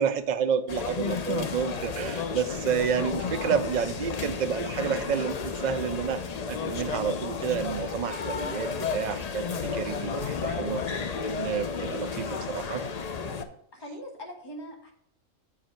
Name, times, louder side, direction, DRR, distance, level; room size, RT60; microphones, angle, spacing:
voice 1, 0.0-9.5 9.7-10.8 11.3-12.9, right 7 dB, 70° right, 10 dB, 0.4 m, -30 dB
sound 1, 0.7-13.4, left 5 dB, 50° left, 0.4 m, -32 dB
voice 2, 11.7-12.1 13.3-13.4 13.7-14.9, equal, 20° left, 1 dB, 1.3 m, -42 dB
8.3 x 4.9 x 4.4 m, 0.70 s
omnidirectional pair, 1.4 m